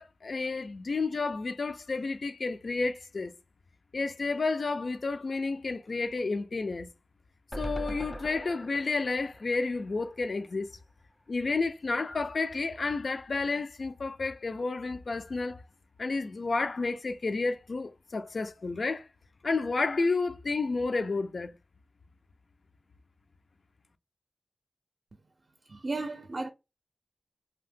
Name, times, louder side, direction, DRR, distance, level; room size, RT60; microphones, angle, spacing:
voice 1, 0.0-3.3 3.9-6.9 7.6-10.7 11.3-15.6 16.0-19.1 19.4-21.5, left 3 dB, 75° left, 0.4 m, -31 dB
sound 1, 7.5-10.8 11.1-11.2 11.4-11.5, right 1 dB, 10° left, 0.4 m, -41 dB
voice 2, 25.6-26.5, right 3 dB, 55° right, 0.4 m, -34 dB
2.8 x 2.1 x 3.3 m
wide cardioid pair, 90°, 0 cm